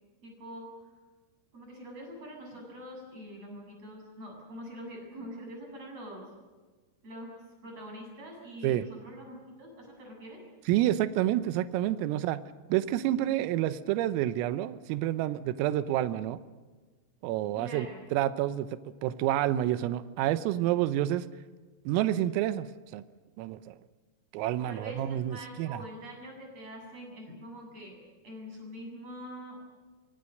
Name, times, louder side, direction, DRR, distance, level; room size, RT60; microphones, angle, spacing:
voice 1, 0.2-0.7 1.5-6.3 7.0-7.3 7.6-10.4 17.5-18.0 24.7-28.0 28.2-29.6, equal, 30° right, 1 dB, 8.7 m, -44 dB
voice 2, 10.7-12.4 12.7-16.4 17.2-21.3 21.9-22.7 22.9-23.0 23.4-23.8 24.3-25.8, right 13 dB, 85° right, 13 dB, 3.6 m, -29 dB
26.0 x 25.0 x 6.6 m, 1.3 s
omnidirectional pair, 5.9 m